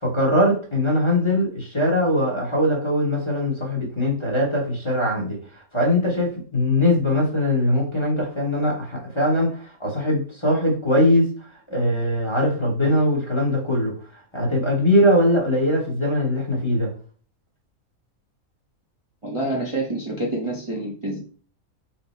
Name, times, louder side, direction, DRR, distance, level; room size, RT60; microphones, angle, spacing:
voice 1, 0.0-16.9, left 1 dB, 25° left, -3 dB, 0.9 m, -21 dB
voice 2, 19.2-21.2, right 1 dB, 30° right, -4 dB, 0.6 m, -27 dB
4.3 x 2.0 x 4.1 m, 0.43 s
omnidirectional pair, 1.5 m